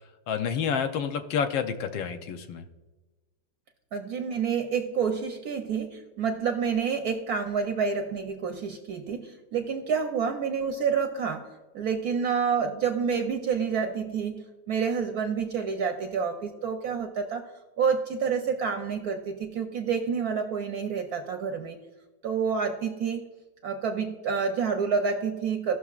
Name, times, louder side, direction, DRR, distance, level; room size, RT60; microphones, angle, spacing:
voice 1, 0.3-2.6, left 7 dB, 80° left, 8 dB, 1.4 m, -29 dB
voice 2, 3.9-17.5 17.8-21.8 22.2-23.3 23.6-25.8, right 6 dB, 70° right, 6 dB, 0.9 m, -28 dB
16.0 x 6.2 x 2.4 m, 1.2 s
omnidirectional pair, 2.1 m